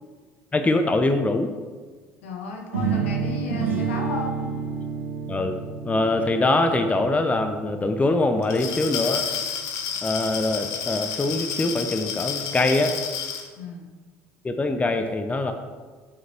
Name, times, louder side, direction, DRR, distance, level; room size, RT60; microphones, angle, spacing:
voice 1, 0.5-1.5 5.3-5.6 5.8-9.3 10.0-13.0 14.4-15.5, left 2 dB, 20° left, 7 dB, 0.8 m, -23 dB
voice 2, 2.2-4.5 13.6-13.8, left 3 dB, 80° left, 2 dB, 1.3 m, -33 dB
sound 1, 2.7-8.6, right 5 dB, 90° right, 1.4 m, -29 dB
Glass, 8.4-13.5, left 7 dB, 65° left, 1.0 m, -30 dB
8.8 x 6.5 x 3.5 m, 1.4 s
hypercardioid pair, 65°, 7 cm